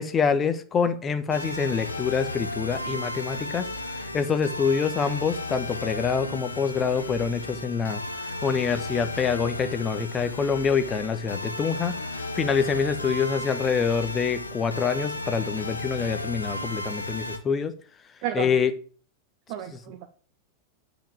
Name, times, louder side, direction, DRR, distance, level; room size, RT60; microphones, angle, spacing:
voice 1, 0.0-17.7 18.3-18.7, left 6 dB, 20° left, 1.2 m, -26 dB
sound 1, 1.3-17.4, left 1 dB, 80° left, 1.1 m, -34 dB
voice 2, 18.2-18.5 19.5-20.1, right 10 dB, 45° right, 1.1 m, -32 dB
8.9 x 5.2 x 7.5 m
figure-of-eight pair, 90°, 0 cm